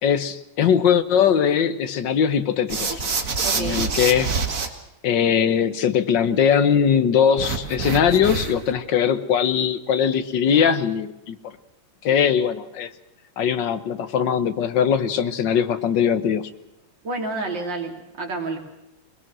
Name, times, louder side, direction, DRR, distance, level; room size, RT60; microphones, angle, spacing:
voice 1, 0.0-3.0 3.5-4.3 5.0-11.4 12.0-12.9 13.4-16.5, left 8 dB, 70° left, 1.8 m, -20 dB
sound 1, 2.7-4.7 7.4-8.7, right 4 dB, 45° right, 2.0 m, -26 dB
voice 2, 3.4-3.9 17.0-18.6, right 3 dB, 65° right, 3.7 m, -29 dB
21.5 x 21.0 x 6.2 m
omnidirectional pair, 2.1 m